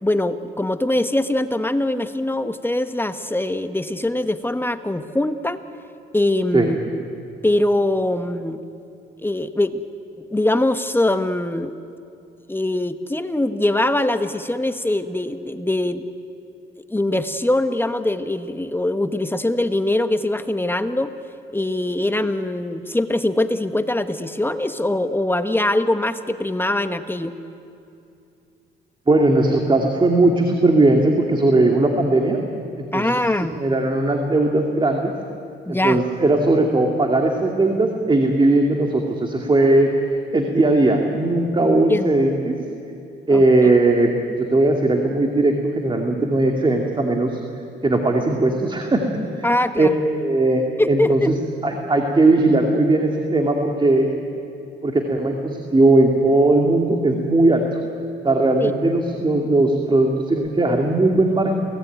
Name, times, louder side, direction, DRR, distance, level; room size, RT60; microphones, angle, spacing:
voice 1, 0.0-5.6 6.1-7.0 7.4-8.6 9.2-9.8 10.3-11.7 12.5-16.0 16.9-21.1 21.5-27.3 32.9-33.5 35.7-36.0 41.9-42.1 43.3-43.4 49.4-50.0 50.8-51.3 58.6-58.7, left 1 dB, 10° left, 9 dB, 1.2 m, -22 dB
voice 2, 29.1-32.4 32.8-33.1 33.6-35.1 35.7-42.6 43.3-44.1 44.5-47.4 47.8-49.0 49.8-50.6 50.9-51.3 51.6-54.1 54.8-57.6 58.2-61.5, right 2 dB, 25° right, 2 dB, 2.5 m, -18 dB
28.5 x 19.0 x 9.3 m, 2.6 s
cardioid pair, 90°, 20 cm